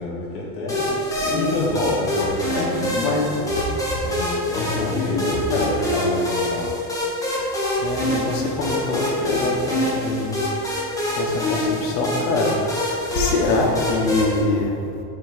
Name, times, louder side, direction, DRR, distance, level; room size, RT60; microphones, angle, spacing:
voice 1, 0.0-3.4 4.0-6.7, left 2 dB, 25° left, -4 dB, 1.4 m, -28 dB
sound 1, 0.7-14.4, left 1 dB, 5° left, 0.8 m, -25 dB
voice 2, 1.2-1.7 2.5-4.0 4.6-5.7 7.8-10.4 11.2-12.7 13.1-14.8, left 3 dB, 80° left, -1 dB, 1.4 m, -24 dB
9.0 x 3.1 x 5.1 m, 2.5 s
supercardioid pair, 160°, 49 cm